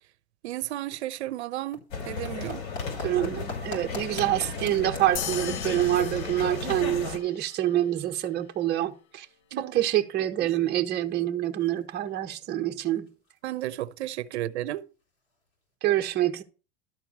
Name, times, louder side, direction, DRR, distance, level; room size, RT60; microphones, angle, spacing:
voice 1, 0.4-2.7 9.5-9.8 10.4-10.6 13.4-14.8, right 14 dB, 80° right, 0.9 m, -33 dB
sound 1, 1.4-15.7, left 2 dB, 35° left, 5.3 m, -48 dB
sound 2, 1.9-7.2, left 4 dB, 60° left, 4.4 m, -35 dB
voice 2, 3.0-9.3 9.6-13.1 15.8-16.4, right 13 dB, 30° right, 1.4 m, -26 dB
sound 3, 5.2-7.9, left 10 dB, 80° left, 1.0 m, -39 dB
12.5 x 4.6 x 7.3 m
supercardioid pair, 140°, 33 cm